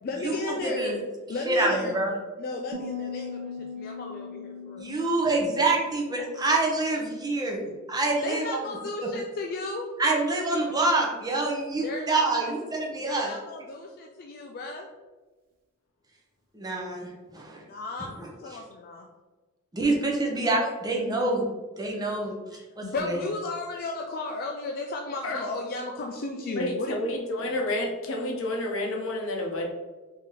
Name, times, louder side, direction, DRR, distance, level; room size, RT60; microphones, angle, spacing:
voice 1, 0.0-2.0 2.4-4.9 8.2-9.9 11.7-12.5 13.0-14.9 17.6-18.1 18.4-19.1 22.5-27.0, left 2 dB, 45° left, 1 dB, 0.3 m, -34 dB
voice 2, 0.6-0.9 1.5-2.1 4.8-8.6 9.0-9.1 10.0-13.3 16.5-17.6 19.7-21.5 21.8-22.3 22.8-23.2, right 2 dB, 20° right, -1 dB, 0.6 m, -26 dB
Piano, 2.7-8.3, left 5 dB, 45° right, 0.9 m, -41 dB
voice 3, 26.6-29.7, left 1 dB, 65° left, 1 dB, 0.7 m, -29 dB
3.5 x 2.7 x 3.7 m, 1.3 s
head